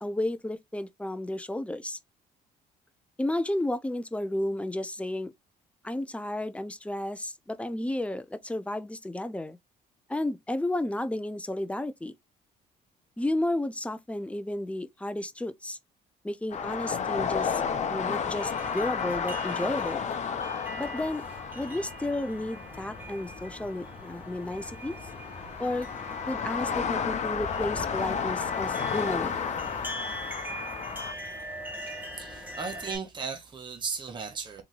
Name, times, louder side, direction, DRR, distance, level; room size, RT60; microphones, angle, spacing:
voice 1, 0.0-2.0 3.2-5.3 5.8-9.6 10.1-12.1 13.2-15.8 16.2-17.6 17.9-20.1 20.8-21.2 21.5-24.9 25.6-25.9 26.3-29.3, left 1 dB, 5° left, 0.6 m, -32 dB
sound 1, 16.5-31.1, left 6 dB, 45° left, 0.9 m, -33 dB
sound 2, 18.3-33.0, equal, 10° right, 1.8 m, -42 dB
voice 2, 32.1-34.6, right 5 dB, 30° right, 1.4 m, -36 dB
3.8 x 3.6 x 3.2 m
cardioid pair, 110°, 17 cm